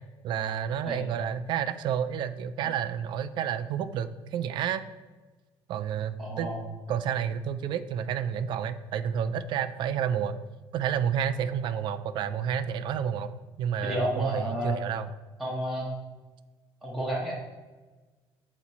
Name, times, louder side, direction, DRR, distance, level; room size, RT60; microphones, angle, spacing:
voice 1, 0.2-4.9 5.7-6.5 6.9-10.4 10.7-13.3 13.6-15.1, right 8 dB, 55° right, 12 dB, 0.4 m, -30 dB
voice 2, 6.2-6.6 13.8-14.7 15.4-15.9 16.8-17.3, equal, ahead, -4 dB, 1.1 m, -31 dB
8.1 x 3.0 x 4.2 m, 1.3 s
cardioid pair, 170°, 9 cm